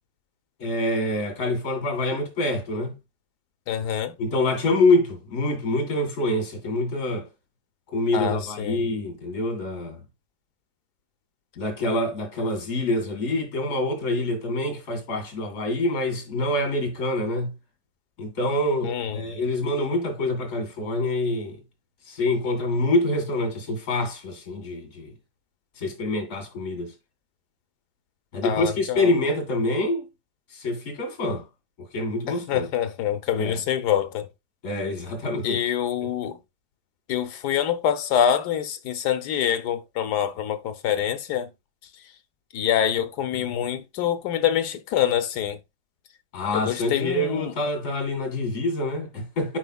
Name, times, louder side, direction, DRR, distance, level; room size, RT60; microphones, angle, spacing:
voice 1, 0.6-2.9 4.2-7.3 7.9-10.0 11.6-17.5 18.2-21.6 22.1-25.1 25.8-26.9 28.3-30.1 30.5-31.4 31.9-32.7 33.3-33.6 34.6-35.6 46.3-49.6, left 2 dB, 60° left, 2.6 m, -26 dB
voice 2, 3.7-4.1 8.1-8.8 18.8-19.2 28.4-29.1 32.3-34.3 35.4-36.4 37.1-41.5 42.5-45.6 46.5-47.5, left 9 dB, 80° left, 1.4 m, -25 dB
10.5 x 5.0 x 2.3 m
omnidirectional pair, 1.7 m